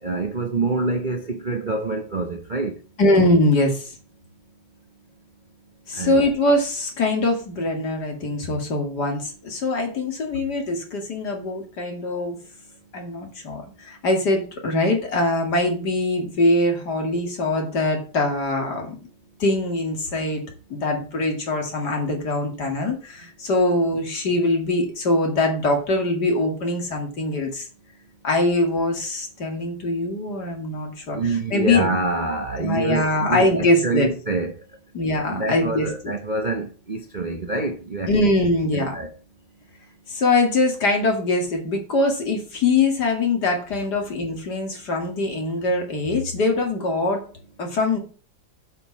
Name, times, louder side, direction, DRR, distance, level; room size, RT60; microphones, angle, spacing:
voice 1, 0.0-2.8 5.9-6.2 31.1-34.7 35.3-38.1 38.7-39.1, right 3 dB, 30° right, 0.9 m, -26 dB
voice 2, 3.0-3.9 5.9-12.4 12.9-18.9 19.4-20.4 20.7-27.7 28.2-31.2 31.5-31.9 32.6-34.1 34.9-35.9 38.1-38.9 40.1-47.2 47.6-48.0, left 2 dB, 55° left, 2.9 m, -22 dB
8.3 x 5.3 x 7.3 m
omnidirectional pair, 2.1 m